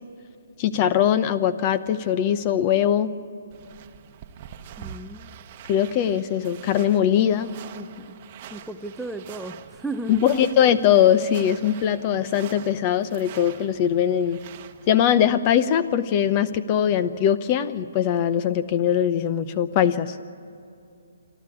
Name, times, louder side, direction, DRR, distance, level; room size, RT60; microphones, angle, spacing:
voice 1, 0.6-3.1 5.7-7.5 10.1-14.4 14.9-20.2, left 9 dB, 30° left, 14 dB, 0.9 m, -21 dB
sound 1, 3.5-15.0, right 9 dB, 35° right, 1.1 m, -44 dB
voice 2, 4.8-5.3 7.7-8.2 8.5-10.2, right 2 dB, ahead, 6 dB, 0.6 m, -35 dB
28.0 x 12.0 x 8.5 m, 2.6 s
figure-of-eight pair, 135°, 0 cm